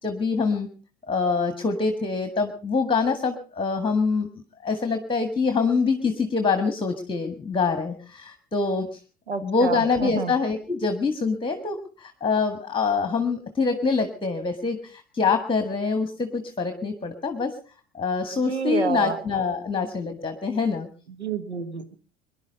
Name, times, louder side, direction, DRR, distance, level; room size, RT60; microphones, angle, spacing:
voice 1, 0.0-0.7 1.1-4.3 4.6-9.0 9.4-17.5 17.9-20.9, left 4 dB, 15° left, 9 dB, 1.8 m, -25 dB
voice 2, 9.3-10.3 18.4-19.2 21.1-21.9, right 6 dB, 85° right, 10 dB, 1.4 m, -29 dB
23.5 x 11.5 x 5.4 m, 0.41 s
figure-of-eight pair, 70°, 32 cm